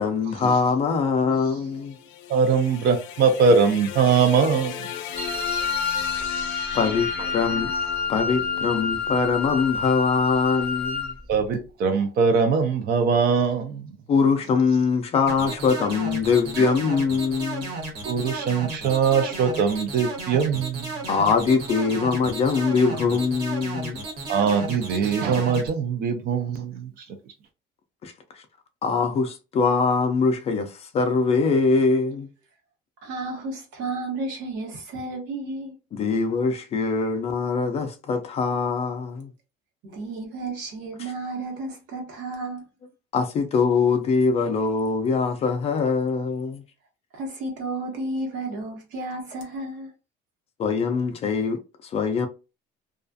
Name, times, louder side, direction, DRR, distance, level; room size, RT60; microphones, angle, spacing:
voice 1, 0.0-1.9 6.7-7.7 8.1-11.1 14.1-17.7 21.1-24.0 28.0-28.1 28.8-32.3 35.9-39.3 43.1-46.6 50.6-51.6 51.9-52.3, left 5 dB, 35° left, 0.4 m, -23 dB
sound 1, 1.7-10.0, left 9 dB, 85° left, 0.5 m, -37 dB
voice 2, 2.3-4.9 11.3-13.9 16.6-16.7 18.0-20.9 24.3-27.1, right 5 dB, 50° right, 0.5 m, -22 dB
Wind instrument woodwind instrument, 5.2-11.2, left 6 dB, 25° right, 0.8 m, -28 dB
sound 2, 15.3-25.7, right 3 dB, 90° right, 1.2 m, -33 dB
voice 3, 33.0-35.8 39.8-42.7 47.1-49.9, right 2 dB, 70° right, 1.0 m, -32 dB
2.4 x 2.3 x 2.5 m
cardioid pair, 160°, 19 cm